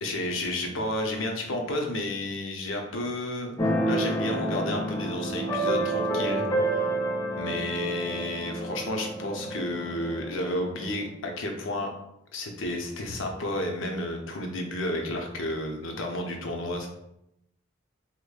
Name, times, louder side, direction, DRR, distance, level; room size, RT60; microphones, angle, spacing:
voice 1, 0.0-6.9 7.3-11.9 12.3-16.9, left 1 dB, 75° left, 2 dB, 0.6 m, -31 dB
Keyboard (musical), 3.6-11.1, right 1 dB, 20° left, 0.6 m, -29 dB
4.9 x 2.1 x 2.3 m, 0.81 s
head